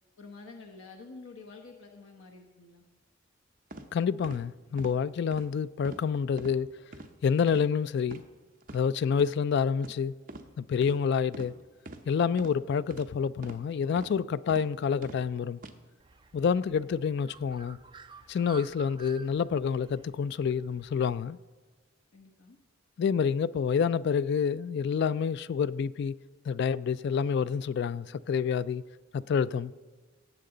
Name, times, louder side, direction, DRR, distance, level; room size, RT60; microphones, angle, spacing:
voice 1, 0.2-2.8 22.1-22.6, left 3 dB, 90° left, 1.0 m, -48 dB
sound 1, 3.7-3.8 4.2-4.4 4.8-4.9 5.3-5.5 5.8-6.0 6.4-6.5 6.9-7.1 7.5-7.7 8.0-8.2 8.6-8.8 9.2-9.3 9.8-10.0 10.3-10.5 10.8-11.0 11.3-11.5 11.8-12.0 12.4-12.5 12.9-13.1 13.4-13.6 14.0-14.1 14.5-14.6 15.0-15.2 15.6-15.7, right 2 dB, 45° right, 0.8 m, -44 dB
voice 2, 3.9-6.7 7.2-8.2 8.7-10.1 10.6-11.5 12.1-15.6 16.3-17.8 18.3-21.4 23.0-26.1 26.5-28.8 29.1-29.7, left 6 dB, 55° left, 0.3 m, -28 dB
Bird, 16.0-21.2, right 5 dB, 25° right, 0.5 m, -52 dB
17.5 x 7.5 x 3.9 m
head